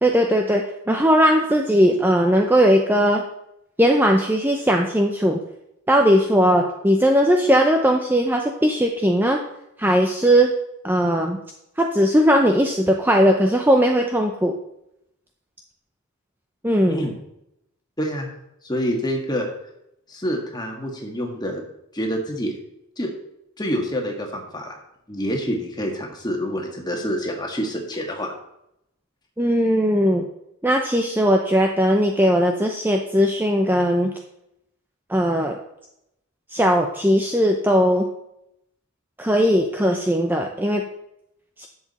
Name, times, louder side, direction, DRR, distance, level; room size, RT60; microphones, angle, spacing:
voice 1, 0.0-3.2 3.8-5.4 5.9-9.4 9.8-10.5 10.8-11.4 11.8-14.5 16.6-17.0 29.4-30.2 30.6-34.1 35.1-35.6 36.5-38.0 39.2-40.8 41.6-41.7, equal, 10° right, 2 dB, 0.6 m, -18 dB
voice 2, 16.9-17.2 18.0-18.3 18.6-19.5 20.1-21.6 21.9-22.5 23.0-23.1 23.6-24.7 25.1-28.3, equal, 20° left, 1 dB, 1.6 m, -27 dB
10.5 x 7.3 x 4.2 m, 0.81 s
head